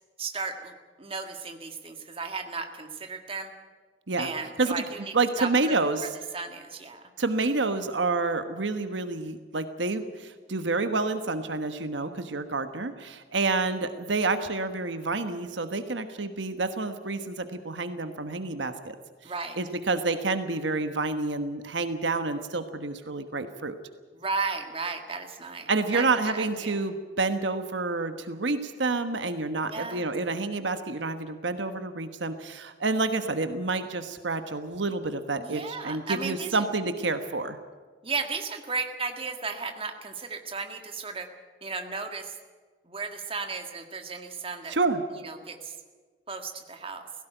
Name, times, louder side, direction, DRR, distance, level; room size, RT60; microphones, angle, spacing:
voice 1, 0.2-0.7 1.0-3.5 4.2-5.7 6.3-7.0 19.2-19.6 24.1-26.8 29.7-30.1 35.4-36.5 38.0-41.3 41.6-42.4 42.9-44.8 45.1-45.7 46.3-47.0, right 4 dB, 30° right, 5 dB, 1.8 m, -35 dB
voice 2, 5.1-6.1 7.2-18.9 19.6-23.8 25.7-37.6 44.7-45.0, right 3 dB, 80° right, 9 dB, 1.3 m, -28 dB
17.0 x 16.5 x 9.1 m, 1.5 s
head